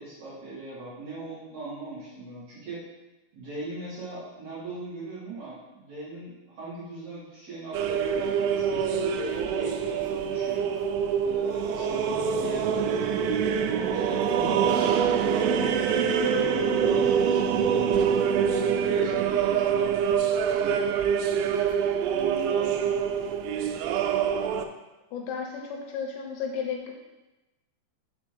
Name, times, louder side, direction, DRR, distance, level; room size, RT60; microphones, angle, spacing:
voice 1, 0.0-2.8 3.3-10.7 11.2-13.0 13.9-16.4 16.8-18.3 18.8-20.2 20.6-20.9 22.1-23.0, right 2 dB, 50° right, -9 dB, 3.1 m, -39 dB
sound 1, 7.7-24.7, right 7 dB, 90° right, 2.9 m, -25 dB
voice 2, 25.1-26.9, left 6 dB, 80° left, 1 dB, 2.9 m, -33 dB
6.6 x 3.4 x 5.2 m, 1.0 s
omnidirectional pair, 5.1 m